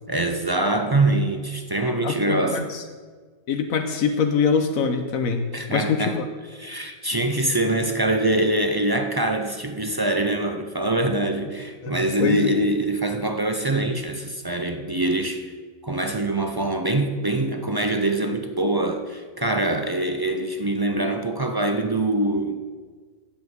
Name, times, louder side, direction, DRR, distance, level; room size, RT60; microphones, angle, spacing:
voice 1, 0.1-2.7 5.5-6.2 6.6-15.5 15.8-22.6, right 2 dB, 35° right, 6 dB, 0.4 m, -24 dB
voice 2, 2.0-2.8 3.5-6.2 11.8-12.5, left 6 dB, 80° left, 6 dB, 1.3 m, -24 dB
10.5 x 7.2 x 7.9 m, 1.5 s
omnidirectional pair, 1.4 m